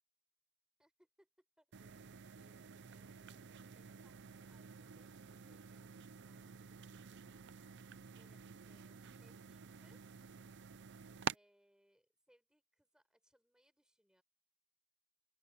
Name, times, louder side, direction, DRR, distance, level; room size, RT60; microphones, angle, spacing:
voice 1, 0.8-7.6 8.2-10.1 11.3-14.2, equal, 5° right, 4.3 m, -75 dB
sound 1, 1.7-11.4, right 6 dB, 55° right, 0.5 m, -50 dB
sound 2, 2.0-7.2, right 2 dB, 80° right, 7.2 m, -82 dB
open air
head